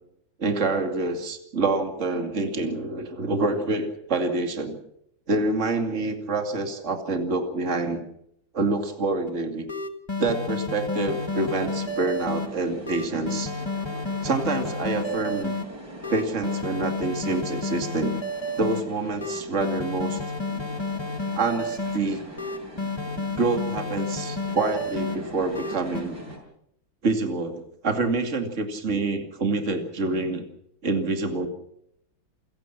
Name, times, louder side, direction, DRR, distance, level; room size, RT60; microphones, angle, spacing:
voice 1, 0.4-4.8 5.3-8.0 8.5-9.6 10.2-13.5 14.2-15.5 16.1-18.1 18.6-20.2 21.3-22.2 23.4-26.2 27.0-30.4 30.8-31.5, right 3 dB, 35° right, 5 dB, 2.7 m, -27 dB
sound 1, 9.3-9.4 9.7-12.5 12.9-15.6 16.0-18.8 19.2-22.0 22.4-25.2 25.5-26.0, left 2 dB, 15° left, 1.5 m, -31 dB
sound 2, 11.1-26.4, right 1 dB, 55° right, 7.4 m, -42 dB
29.0 x 16.0 x 6.0 m, 0.74 s
omnidirectional pair, 2.2 m